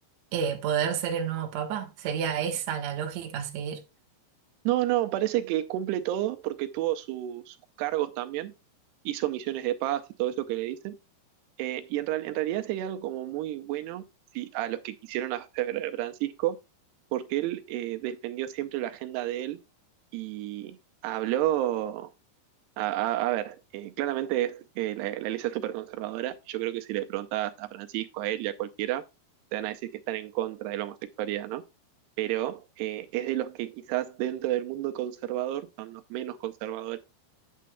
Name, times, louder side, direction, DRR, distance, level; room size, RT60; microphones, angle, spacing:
voice 1, 0.3-3.8, right 8 dB, 60° right, 2.0 m, -30 dB
voice 2, 4.7-8.5 9.1-11.0 11.6-14.0 14.3-16.6 17.1-19.6 20.1-20.8 21.0-22.1 22.8-29.0 29.5-31.6 32.2-37.0, right 14 dB, 85° right, 2.7 m, -31 dB
9.3 x 8.5 x 2.3 m
omnidirectional pair, 4.8 m